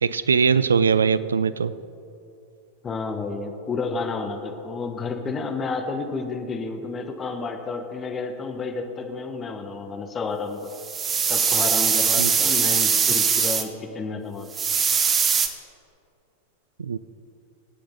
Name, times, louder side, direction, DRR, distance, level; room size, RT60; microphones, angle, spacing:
voice 1, 0.0-1.7 12.2-12.3 16.8-17.0, right 6 dB, 70° right, 16 dB, 0.5 m, -21 dB
voice 2, 2.8-10.7 11.2-14.5, left 4 dB, 20° left, 5 dB, 1.4 m, -31 dB
sound 1, 10.7-13.6 14.5-15.5, right 6 dB, 25° right, 1.0 m, -21 dB
25.5 x 8.6 x 4.0 m, 2.7 s
figure-of-eight pair, 90°, 0 cm